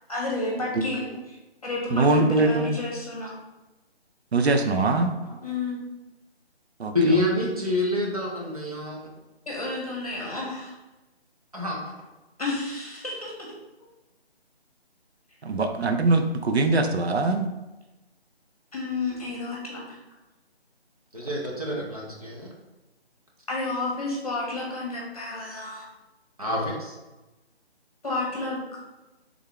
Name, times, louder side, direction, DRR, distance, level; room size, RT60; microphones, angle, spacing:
voice 1, 0.1-1.4 1.6-3.4 5.4-5.8 9.5-10.7 12.4-13.3 18.7-20.0 23.5-25.9 28.0-28.6, left 2 dB, 35° left, -3 dB, 1.1 m, -31 dB
voice 2, 1.9-2.8 4.3-5.1 6.8-6.9 15.4-17.5, right 3 dB, 75° right, 6 dB, 0.6 m, -22 dB
voice 3, 6.9-9.1 11.5-11.9 21.1-22.5 26.4-27.0, left 1 dB, 35° right, -3 dB, 0.7 m, -27 dB
3.5 x 3.5 x 3.5 m, 1.1 s
figure-of-eight pair, 175°, 32 cm